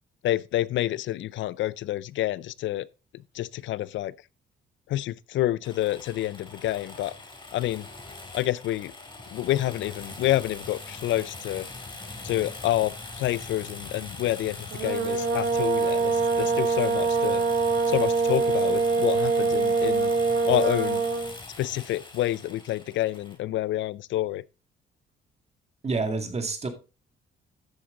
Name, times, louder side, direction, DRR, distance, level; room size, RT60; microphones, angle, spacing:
voice 1, 0.2-2.9 3.3-4.1 4.9-7.1 7.5-7.9 8.3-8.9 9.3-11.7 12.2-17.4 17.9-20.1 20.4-21.0 21.6-24.4, left 14 dB, 70° left, 0.4 m, -28 dB
sound 1, 5.6-23.4, left 3 dB, 25° left, 3.0 m, -42 dB
sound 2, 14.7-21.3, right 4 dB, 75° right, 1.6 m, -24 dB
voice 2, 25.8-26.7, right 3 dB, 30° right, 2.1 m, -28 dB
13.5 x 5.8 x 3.7 m
cardioid pair, 90°, 20 cm